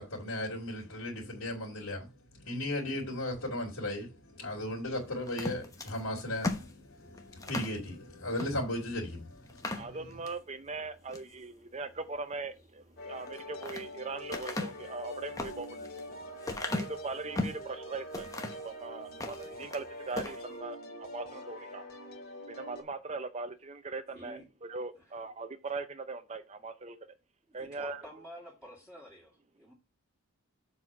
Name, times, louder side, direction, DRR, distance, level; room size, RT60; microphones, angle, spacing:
voice 1, 0.0-10.0, left 1 dB, 70° left, 2.7 m, -36 dB
sound 1, 5.3-7.8 8.3-8.5 8.9-9.0 9.5-10.4 10.9-11.3 13.1-13.9 14.3-17.7 18.1-18.7 19.1-19.8 20.1-20.4, left 2 dB, 15° left, 0.9 m, -37 dB
voice 2, 9.7-16.0 16.6-21.8 22.5-27.0 27.5-28.0, right 3 dB, 30° right, 0.6 m, -40 dB
sound 2, 13.0-22.8, equal, 45° left, 2.0 m, -44 dB
voice 3, 24.1-24.5 24.9-25.1 27.5-29.7, equal, ahead, 2.2 m, -50 dB
7.3 x 4.2 x 5.6 m
head